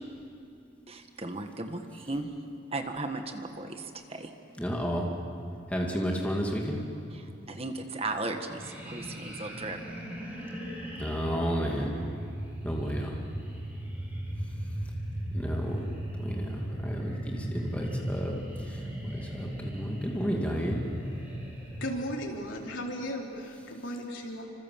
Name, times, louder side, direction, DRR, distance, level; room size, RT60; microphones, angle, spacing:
voice 1, 0.9-2.3 2.7-4.3 7.1-9.8, right 2 dB, 30° right, 6 dB, 1.5 m, -36 dB
voice 2, 4.6-5.1 5.7-6.8 11.0-11.9 12.6-13.2 15.3-15.8 16.2-18.3 18.7-20.8, equal, 5° left, -1 dB, 2.4 m, -32 dB
sound 1, 8.5-22.0, equal, 10° right, 5.9 m, -37 dB
voice 3, 21.8-24.4, equal, 80° left, 0 dB, 4.1 m, -36 dB
27.5 x 26.0 x 7.6 m, 2.6 s
head